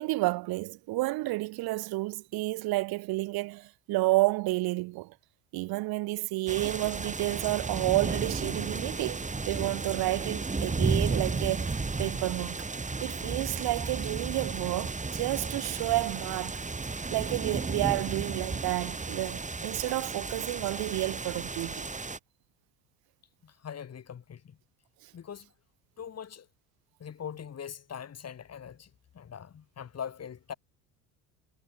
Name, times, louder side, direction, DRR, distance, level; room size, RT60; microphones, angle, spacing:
voice 1, 0.0-5.1 5.5-12.7 13.0-16.6 17.1-21.9, right 20 dB, 65° right, 2.3 m, -30 dB
sound 1, 6.5-22.2, right 3 dB, 20° right, 5.9 m, -33 dB
voice 2, 23.4-24.6 25.1-25.5 26.0-26.5 27.0-30.5, left 8 dB, 40° left, 7.6 m, -42 dB
supercardioid pair, 85°, 39 cm